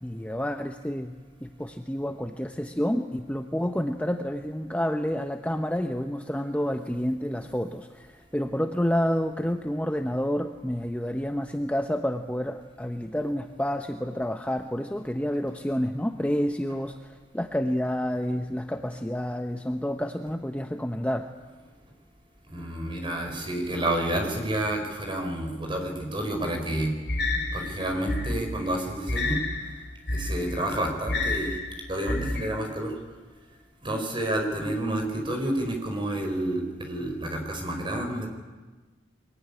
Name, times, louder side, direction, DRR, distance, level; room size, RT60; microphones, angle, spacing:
voice 1, 0.0-1.1 1.4-21.3, equal, 5° left, 5 dB, 0.8 m, -29 dB
voice 2, 22.5-26.9 27.5-29.4 30.1-31.5 31.9-32.9 33.8-38.3, right 1 dB, 25° right, 3 dB, 4.7 m, -29 dB
sound 1, 27.1-32.5, left 2 dB, 55° left, 3.6 m, -30 dB
23.5 x 22.0 x 9.9 m, 1.3 s
head